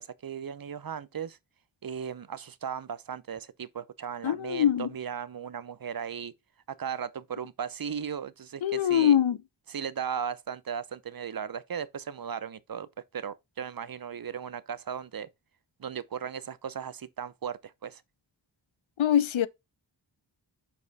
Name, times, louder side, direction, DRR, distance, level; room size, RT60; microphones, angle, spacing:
voice 1, 0.0-1.4 1.8-6.3 6.7-9.2 9.7-12.9 13.1-15.3 15.8-18.0, right 7 dB, 50° right, 0.6 m, -36 dB
voice 2, 4.2-4.9 8.6-9.4 19.0-19.5, left 10 dB, 85° left, 0.6 m, -23 dB
5.4 x 4.8 x 3.9 m
wide cardioid pair, 45°, 46 cm